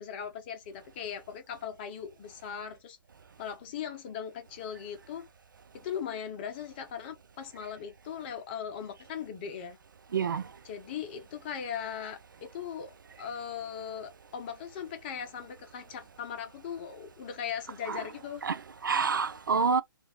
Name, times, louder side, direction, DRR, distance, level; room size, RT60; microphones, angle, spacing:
voice 1, 0.0-3.0 3.4-5.3 5.7-9.8 10.6-18.4, left 8 dB, 30° left, 0.7 m, -39 dB
voice 2, 10.1-10.4 17.9-18.0 18.4-19.8, right 5 dB, 60° right, 0.4 m, -28 dB
2.9 x 2.5 x 2.8 m
figure-of-eight pair, 130°, 12 cm